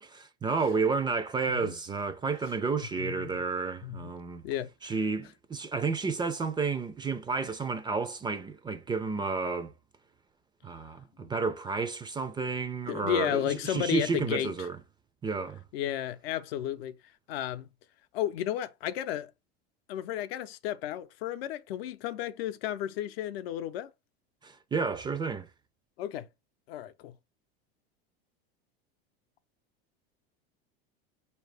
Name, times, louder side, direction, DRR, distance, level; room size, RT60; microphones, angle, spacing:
voice 1, 0.0-4.4 4.8-9.7 10.6-14.8 15.2-15.6 24.4-25.5, right 4 dB, 15° right, 0.4 m, -31 dB
voice 2, 3.0-3.4 3.8-4.1 4.4-4.9 11.2-11.3 12.9-14.5 15.7-17.0 17.3-17.7 18.1-19.3 19.9-23.9 26.0-26.3 26.7-27.1, left 11 dB, 75° left, 0.6 m, -33 dB
4.4 x 2.8 x 3.2 m
supercardioid pair, 110°, 31 cm